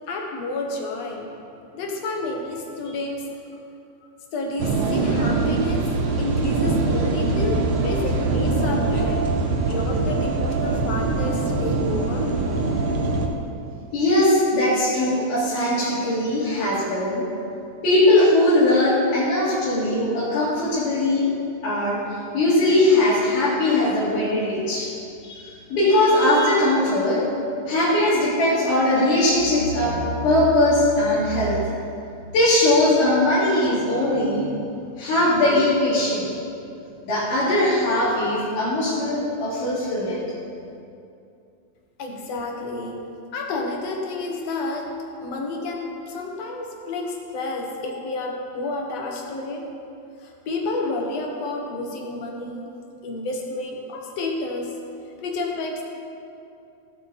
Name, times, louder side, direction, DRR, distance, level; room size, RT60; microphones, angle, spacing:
voice 1, 0.1-1.3 1.7-3.3 4.3-9.2 9.6-12.3 42.0-44.9 45.2-49.7 50.2-52.7 53.0-54.8 55.2-55.8, left 2 dB, 60° left, 1 dB, 2.1 m, -30 dB
sound 1, 4.6-13.3, right 3 dB, 70° right, 1.3 m, -23 dB
voice 2, 13.9-17.2 17.8-21.3 21.6-22.0 22.3-24.9 25.2-27.2 27.7-31.6 32.3-34.5 35.0-36.3 37.0-40.2, left 1 dB, 85° left, -11 dB, 4.2 m, -20 dB
17.0 x 7.8 x 4.1 m, 2.6 s
omnidirectional pair, 3.6 m